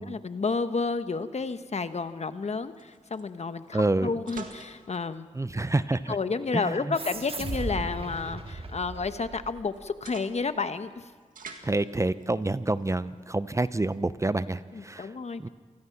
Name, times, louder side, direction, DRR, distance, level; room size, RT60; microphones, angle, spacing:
voice 1, 0.0-5.3 6.1-11.1 14.7-15.4, left 4 dB, 55° left, 11 dB, 1.1 m, -31 dB
sound 1, 0.9-13.3, right 5 dB, 85° right, 2.0 m, -51 dB
voice 2, 3.7-4.1 5.3-6.2 6.5-6.9 11.6-15.5, right 2 dB, 20° right, 14 dB, 0.7 m, -28 dB
sound 2, 6.9-10.0, right 2 dB, 45° right, 1.9 m, -37 dB
27.0 x 19.5 x 5.9 m, 1.5 s
cardioid pair, 55°, 14 cm